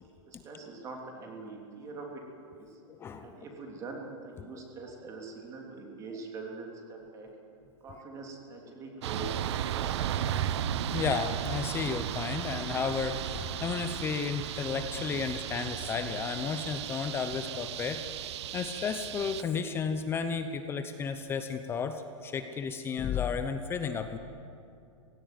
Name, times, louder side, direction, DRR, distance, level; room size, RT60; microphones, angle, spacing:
voice 1, 0.3-2.1 2.6-2.7 3.2-7.3 7.8-9.3 9.8-10.1, right 3 dB, 20° right, 1 dB, 3.2 m, -43 dB
voice 2, 2.9-3.4 4.4-4.7 7.9-8.0 10.9-18.0 18.5-24.2, left 6 dB, 15° left, 8 dB, 0.7 m, -33 dB
sound 1, 9.0-19.4, right 10 dB, 55° right, 1.0 m, -35 dB
18.0 x 17.0 x 9.2 m, 2.7 s
hypercardioid pair, 155°, 17 cm